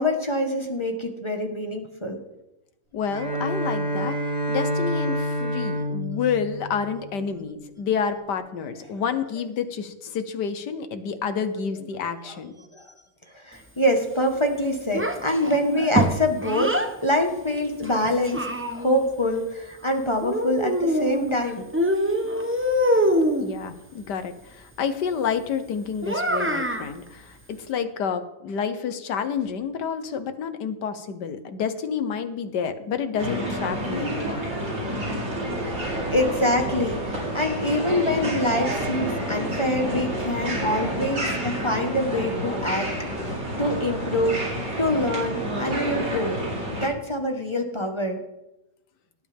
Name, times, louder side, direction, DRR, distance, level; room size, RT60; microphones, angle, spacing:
voice 1, 0.0-2.2 12.2-12.9 13.3-16.7 17.0-18.5 18.7-21.7 34.2-34.4 34.9-43.2 43.6-46.4 46.7-48.2, left 1 dB, 15° left, 3 dB, 1.4 m, -25 dB
voice 2, 2.9-4.2 4.5-12.5 23.4-34.5, left 6 dB, 70° left, 10 dB, 1.6 m, -29 dB
Bowed string instrument, 3.0-7.5, equal, 30° right, 4.5 m, -28 dB
Child speech kid speaking, 14.9-16.9 17.8-19.1 20.2-21.4 21.7-23.5 26.0-26.9, equal, 15° right, 0.5 m, -24 dB
sound 1, 33.2-46.9, right 1 dB, 80° right, 4.8 m, -29 dB
18.0 x 11.5 x 3.6 m, 0.93 s
omnidirectional pair, 1.9 m